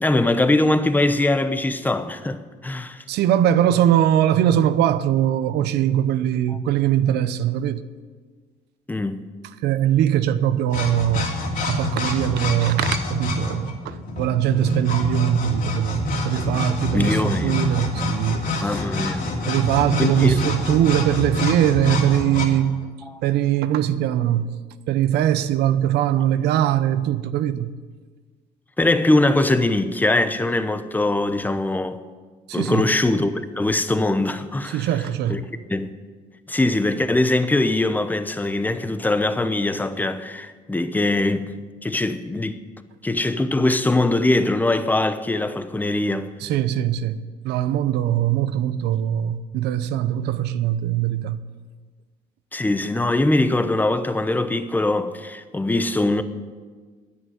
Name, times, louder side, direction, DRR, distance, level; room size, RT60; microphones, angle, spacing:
voice 1, 0.0-3.0 8.9-9.3 16.9-17.5 18.6-19.3 20.0-20.4 23.1-23.2 28.8-32.0 32.5-34.9 35.3-35.4 35.7-35.9 36.5-41.5 41.8-42.6 43.0-46.3 52.5-56.2, left 2 dB, 10° left, 0.8 m, -22 dB
voice 2, 3.1-7.8 9.6-11.3 11.7-18.8 19.4-22.9 23.2-24.5 24.9-27.7 32.5-32.9 34.7-35.4 46.4-51.4, right 11 dB, 80° right, 0.8 m, -21 dB
sound 1, 10.7-22.5, left 2 dB, 55° left, 2.8 m, -26 dB
11.0 x 9.6 x 9.2 m
cardioid pair, 110°, 17 cm